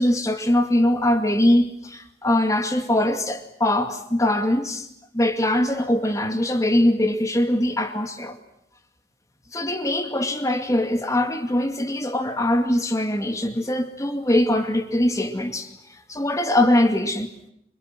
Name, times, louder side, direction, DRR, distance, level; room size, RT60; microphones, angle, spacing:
voice 1, 0.0-4.9 5.1-8.4 9.5-15.7 16.1-17.3, left 1 dB, 20° left, 2.3 m, -22 dB
27.5 x 26.0 x 7.7 m
head